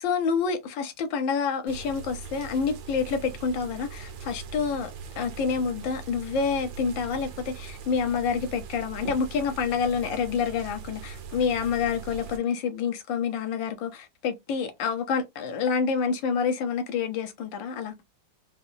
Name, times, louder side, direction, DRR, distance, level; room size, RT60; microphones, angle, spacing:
voice 1, 0.0-4.9 5.2-17.9, left 6 dB, 75° left, 1.6 m, -28 dB
sound 1, 1.7-12.4, right 6 dB, 75° right, 1.6 m, -41 dB
4.2 x 2.6 x 2.8 m
omnidirectional pair, 2.1 m